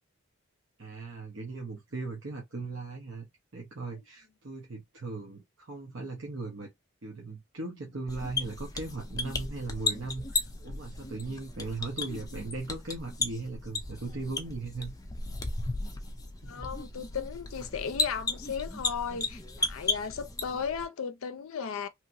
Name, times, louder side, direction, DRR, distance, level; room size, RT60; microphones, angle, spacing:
voice 1, 0.8-3.2 3.5-6.7 7.0-14.9 16.4-16.7, right 3 dB, 55° right, 0.9 m, -38 dB
sound 1, 8.1-20.8, left 3 dB, 15° left, 0.4 m, -35 dB
voice 2, 16.4-21.9, left 6 dB, 65° left, 0.5 m, -35 dB
3.0 x 2.9 x 2.5 m
head